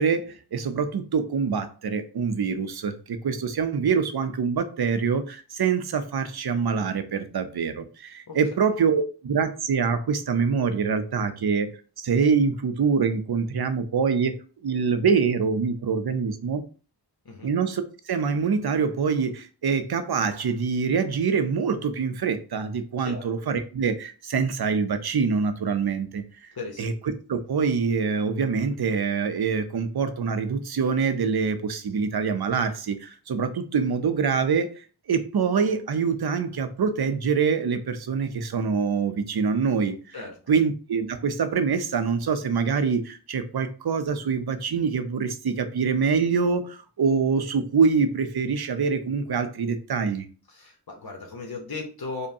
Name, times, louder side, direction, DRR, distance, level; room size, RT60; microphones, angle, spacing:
voice 1, 0.0-11.7 12.0-14.3 14.6-16.6 17.4-17.8 18.1-26.2 26.8-26.9 27.3-34.7 35.1-40.0 40.5-50.2, right 5 dB, 70° right, 0.6 m, -25 dB
voice 2, 23.0-23.3 26.5-26.9 40.1-40.5 50.5-52.3, left 3 dB, 65° left, 0.9 m, -37 dB
5.2 x 2.2 x 2.7 m
wide cardioid pair, 60°, 39 cm